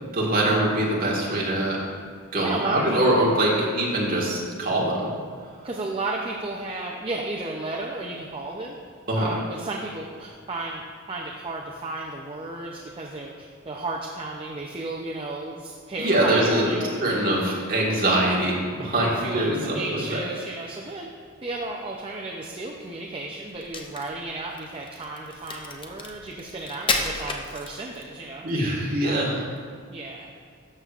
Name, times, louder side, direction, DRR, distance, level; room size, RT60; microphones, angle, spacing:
voice 1, 0.1-1.8 2.3-5.1 9.1-9.3 16.0-20.2 28.4-29.3, right 1 dB, 40° right, -4 dB, 1.6 m, -23 dB
voice 2, 2.4-3.2 3.5-3.8 5.6-8.8 9.1-10.8 11.1-17.4 19.0-21.1 21.4-28.4 29.0-29.3 29.9-30.3, right 2 dB, 25° right, -2 dB, 0.5 m, -33 dB
Crack, 23.5-28.1, left 3 dB, 25° left, 0.6 m, -31 dB
12.0 x 6.8 x 2.5 m, 2.1 s
head